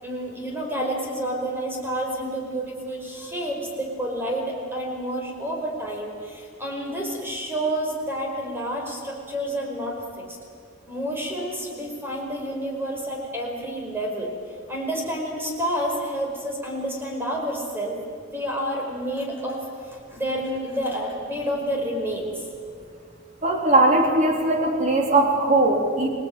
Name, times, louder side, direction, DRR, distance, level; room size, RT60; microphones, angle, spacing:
voice 1, 0.0-10.4 10.9-14.3 14.7-18.0 18.3-22.4, right 1 dB, 10° right, 0 dB, 5.0 m, -29 dB
voice 2, 23.4-26.1, right 2 dB, 35° right, 1 dB, 3.6 m, -19 dB
26.0 x 19.0 x 9.0 m, 2.2 s
head